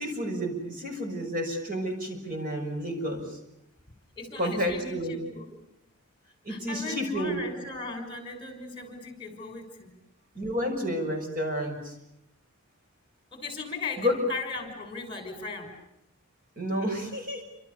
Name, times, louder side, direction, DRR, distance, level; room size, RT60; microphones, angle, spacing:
voice 1, 0.0-3.2 4.4-5.2 6.4-7.4 10.3-11.9 14.0-14.1 16.6-17.4, equal, 40° right, 3 dB, 6.3 m, -30 dB
voice 2, 4.2-5.5 6.5-9.9 13.3-15.7, left 3 dB, 25° left, 6 dB, 6.0 m, -37 dB
28.5 x 27.0 x 6.9 m, 0.83 s
head